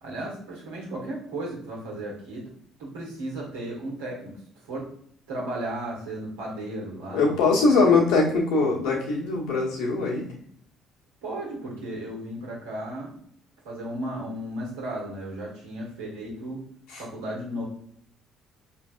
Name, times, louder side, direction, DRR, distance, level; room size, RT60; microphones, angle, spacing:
voice 1, 0.0-2.5 2.8-4.4 4.6-4.9 5.3-7.9 11.2-13.2 13.6-16.6 17.0-17.6, right 1 dB, 80° right, -4 dB, 1.6 m, -35 dB
voice 2, 7.1-10.3 16.9-17.0, left 3 dB, 70° left, -3 dB, 1.2 m, -22 dB
5.2 x 3.3 x 2.5 m, 0.64 s
hypercardioid pair, 50°, 0 cm